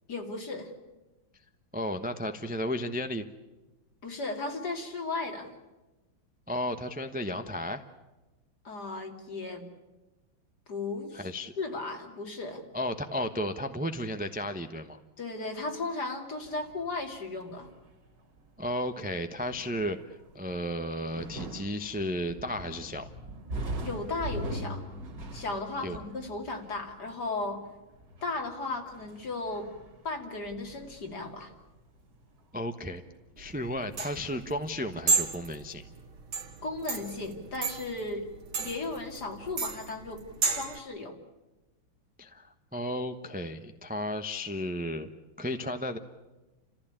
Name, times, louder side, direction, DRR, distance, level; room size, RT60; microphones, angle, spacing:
voice 1, 0.1-0.7 4.0-5.5 8.6-9.6 10.7-11.3 11.6-12.6 15.2-17.7 23.8-24.8 25.3-27.6 28.2-29.7 30.0-31.5 36.6-38.2 38.6-40.2 40.5-41.2, left 3 dB, 50° left, 2 dB, 3.2 m, -35 dB
voice 2, 1.7-3.3 6.5-7.8 11.1-11.5 12.7-15.0 18.6-23.1 25.8-26.0 32.5-33.0 33.4-35.8 42.2-45.1 45.4-46.0, left 1 dB, 10° right, 7 dB, 0.4 m, -33 dB
sound 1, 16.4-32.4 32.6-33.3, right 1 dB, 50° right, 2.5 m, -42 dB
sound 2, 33.4-40.8, right 4 dB, 85° right, 2.7 m, -32 dB
30.0 x 15.0 x 8.8 m, 1.1 s
omnidirectional pair, 2.2 m